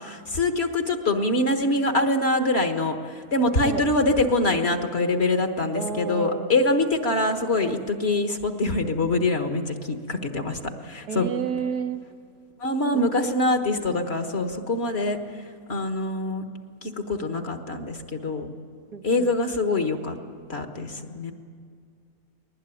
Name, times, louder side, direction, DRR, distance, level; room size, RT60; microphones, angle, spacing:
voice 1, 0.0-11.3 12.6-15.2 15.7-16.5 16.8-18.5 19.0-20.1 20.5-21.3, left 2 dB, 40° left, 6 dB, 1.6 m, -24 dB
voice 2, 5.7-6.6 11.1-12.0 12.9-13.1 18.9-19.3, right 7 dB, 80° right, 6 dB, 1.6 m, -31 dB
21.0 x 20.0 x 9.9 m, 2.2 s
omnidirectional pair, 1.7 m